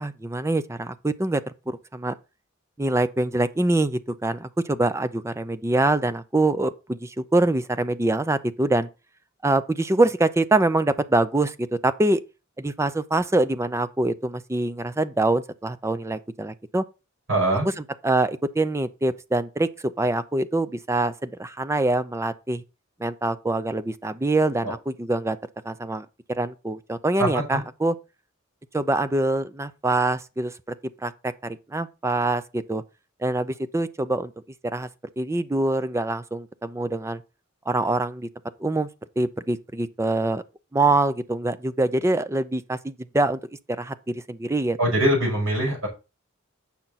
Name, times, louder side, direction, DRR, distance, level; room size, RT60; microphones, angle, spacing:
voice 1, 0.0-2.1 2.8-8.9 9.4-11.6 11.8-12.2 12.6-16.8 17.6-22.6 23.0-25.4 25.6-28.0 28.7-30.7 31.0-32.8 33.2-34.3 34.6-34.9 35.2-37.2 37.7-38.3 38.6-38.9 39.2-40.4 40.7-43.4 43.7-44.8, right 2 dB, 15° right, 0.5 m, -24 dB
voice 2, 17.3-17.7 27.3-27.6 44.8-45.9, right 1 dB, 85° right, 5.9 m, -22 dB
8.9 x 5.8 x 4.1 m
head